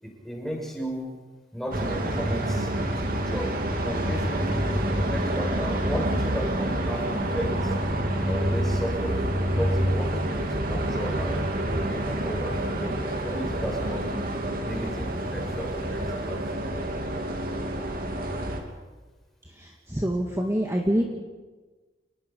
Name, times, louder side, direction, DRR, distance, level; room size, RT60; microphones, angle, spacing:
voice 1, 0.0-1.1 1.5-2.7 2.9-3.5 3.8-7.5 8.3-9.2 9.6-14.3 14.6-16.4, equal, ahead, -1 dB, 6.5 m, -34 dB
sound 1, 1.7-18.6, right 1 dB, 55° right, 2.7 m, -27 dB
voice 2, 19.9-21.0, equal, 15° right, 1 dB, 2.0 m, -25 dB
29.5 x 20.0 x 5.5 m, 1.3 s
head